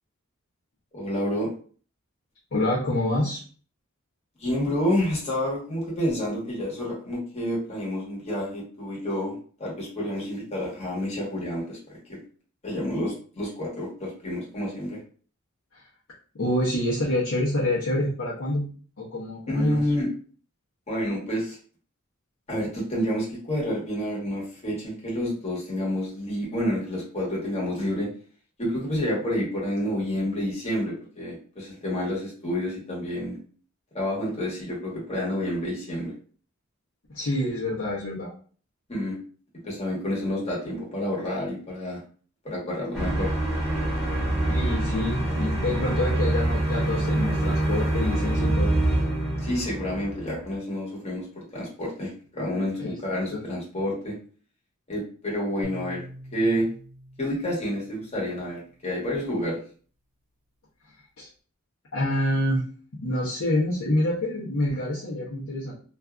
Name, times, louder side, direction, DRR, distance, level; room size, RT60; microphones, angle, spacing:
voice 1, 0.9-1.5 4.4-12.2 12.6-15.0 19.5-20.1 20.9-21.6 22.5-28.1 28.6-33.4 33.9-36.1 38.9-39.2 39.6-42.0 42.4-43.3 49.4-54.1 54.9-56.0 56.3-56.7 57.2-59.6, equal, 30° left, -4 dB, 1.1 m, -29 dB
voice 2, 2.5-3.4 15.7-15.8 16.3-18.7 19.0-19.8 37.1-38.3 44.5-48.7 52.8-52.9 53.3-53.4 61.2-61.3 61.9-62.6 63.0-65.7, left 1 dB, 70° left, -8 dB, 0.7 m, -27 dB
sound 1, 42.9-50.5, right 1 dB, ahead, 1.0 m, -25 dB
sound 2, 55.6-58.9, equal, 40° right, 0.6 m, -45 dB
2.6 x 2.4 x 2.2 m, 0.43 s
head